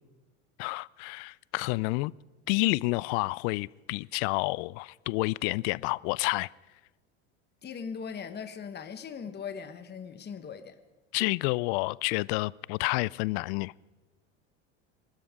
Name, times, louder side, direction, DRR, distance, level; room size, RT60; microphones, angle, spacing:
voice 1, 0.6-2.1 2.5-6.5 11.1-13.7, left 24 dB, 70° left, 24 dB, 0.5 m, -29 dB
voice 2, 7.6-10.8, left 6 dB, 30° left, 8 dB, 1.3 m, -39 dB
26.5 x 13.0 x 3.7 m, 1.2 s
hypercardioid pair, 90°, 34 cm